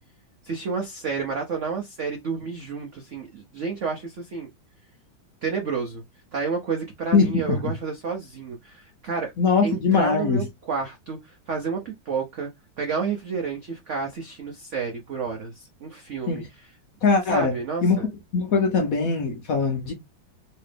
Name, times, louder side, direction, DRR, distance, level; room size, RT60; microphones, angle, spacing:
voice 1, 0.4-4.5 5.4-6.0 6.3-9.3 9.6-12.5 12.8-16.7 17.3-18.1, right 5 dB, 70° right, 0.7 m, -30 dB
voice 2, 7.1-7.6 9.4-10.4 16.3-16.4 17.0-17.5 17.8-18.0 18.3-19.9, left 4 dB, 60° left, 1.0 m, -21 dB
3.2 x 2.9 x 3.3 m
omnidirectional pair, 2.1 m